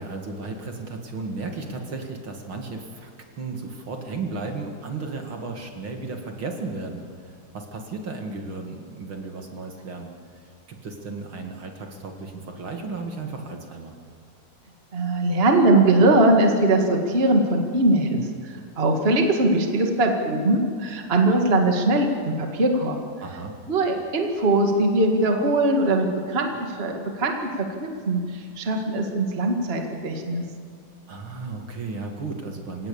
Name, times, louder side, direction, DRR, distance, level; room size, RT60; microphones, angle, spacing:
voice 1, 0.0-3.1 3.4-10.1 10.3-13.9 23.2-23.6 31.1-32.9, right 3 dB, 45° right, 3 dB, 1.8 m, -34 dB
voice 2, 14.9-23.0 23.7-30.4, right 2 dB, 65° right, 2 dB, 0.5 m, -21 dB
28.5 x 17.5 x 7.1 m, 2.1 s
omnidirectional pair, 4.8 m